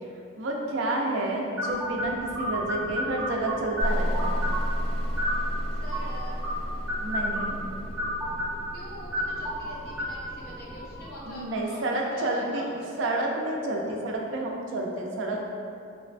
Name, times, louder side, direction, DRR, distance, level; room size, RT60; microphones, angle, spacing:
voice 1, 0.4-4.4 7.0-7.5 11.3-12.6 13.0-15.4, right 2 dB, 65° right, 0 dB, 0.3 m, -29 dB
sound 1, 1.6-11.1, equal, 5° right, 0.5 m, -33 dB
sound 2, 2.4-12.0, equal, 30° left, 1.3 m, -48 dB
sound 3, 3.8-11.3, equal, 80° left, 0.9 m, -32 dB
voice 2, 5.8-6.4 8.7-11.8 12.1-13.2, equal, 45° left, -5 dB, 0.5 m, -44 dB
3.1 x 2.1 x 2.4 m, 2.5 s
head